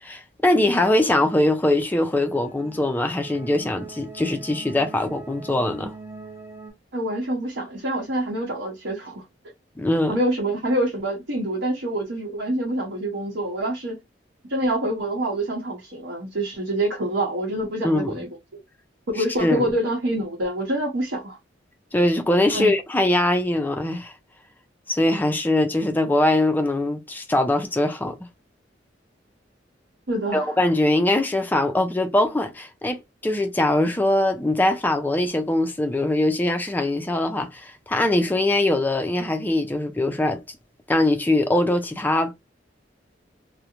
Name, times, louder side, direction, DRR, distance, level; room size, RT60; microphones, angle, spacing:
voice 1, 0.0-5.9 9.8-10.1 17.8-18.2 19.2-19.7 21.9-24.1 24.9-28.2 30.3-40.4 40.9-42.3, left 1 dB, 10° left, 0.4 m, -22 dB
sound 1, 1.8-6.7, right 4 dB, 15° right, 0.8 m, -43 dB
voice 2, 6.9-9.2 10.1-14.0 14.5-18.3 19.1-21.4 22.5-22.7 30.1-30.5, right 1 dB, 75° right, 0.8 m, -26 dB
2.4 x 2.1 x 2.9 m
head